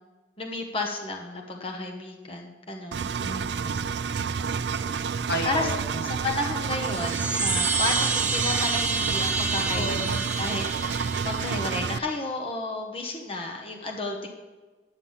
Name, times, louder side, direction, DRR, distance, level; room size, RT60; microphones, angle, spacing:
voice 1, 0.4-3.1 5.4-5.7 6.0-14.3, left 2 dB, 30° left, 1 dB, 1.1 m, -32 dB
Engine, 2.9-12.0, right 6 dB, 75° right, 0.4 m, -29 dB
voice 2, 3.2-4.0 5.3-6.0 9.7-10.2, equal, 65° left, 3 dB, 1.5 m, -33 dB
sound 1, 6.8-11.8, right 4 dB, 10° right, 1.6 m, -28 dB
10.0 x 8.9 x 5.6 m, 1.3 s
head